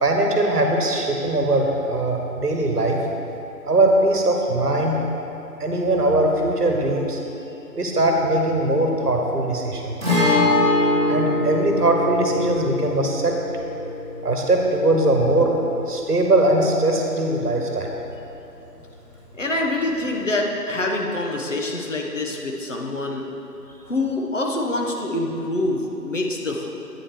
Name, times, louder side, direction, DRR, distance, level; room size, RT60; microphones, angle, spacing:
voice 1, 0.0-3.0 3.6-5.0 5.6-7.2 7.8-10.0 11.1-13.4 14.2-15.5 15.9-17.9, right 1 dB, 70° right, 1 dB, 1.2 m, -20 dB
Guitar, 10.0-17.6 17.9-18.0 20.0-20.1, left 2 dB, 5° left, 1.3 m, -24 dB
voice 2, 19.3-23.3 23.9-26.7, left 2 dB, 50° left, 0 dB, 0.9 m, -25 dB
8.5 x 5.0 x 4.6 m, 2.9 s
figure-of-eight pair, 160°, 48 cm